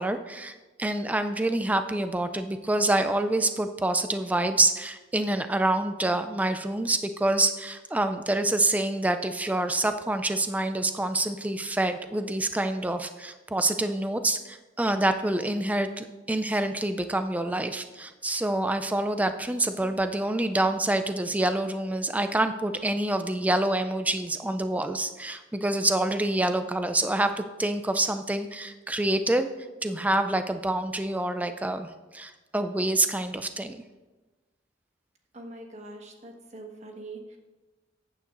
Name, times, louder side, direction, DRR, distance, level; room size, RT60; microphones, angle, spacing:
voice 1, 0.0-29.5 29.8-33.8, right 2 dB, 10° right, 8 dB, 0.3 m, -27 dB
voice 2, 35.3-37.4, right 2 dB, 35° right, 2 dB, 1.3 m, -43 dB
14.0 x 9.3 x 2.5 m, 1.2 s
head